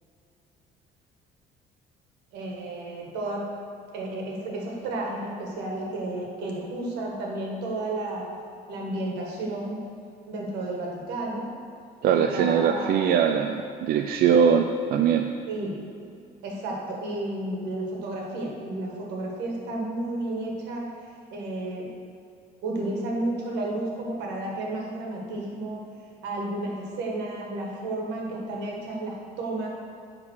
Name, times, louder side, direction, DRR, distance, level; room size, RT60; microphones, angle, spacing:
voice 1, 2.3-3.5 3.9-8.2 8.7-9.8 10.3-11.5 12.1-13.1 15.5-15.8 16.4-21.9 22.6-25.9 26.2-29.7, right 2 dB, 85° right, -1 dB, 1.7 m, -32 dB
voice 2, 12.0-15.3, right 7 dB, 65° right, 5 dB, 0.4 m, -21 dB
9.8 x 3.7 x 6.3 m, 2.4 s
cardioid pair, 110°, 17 cm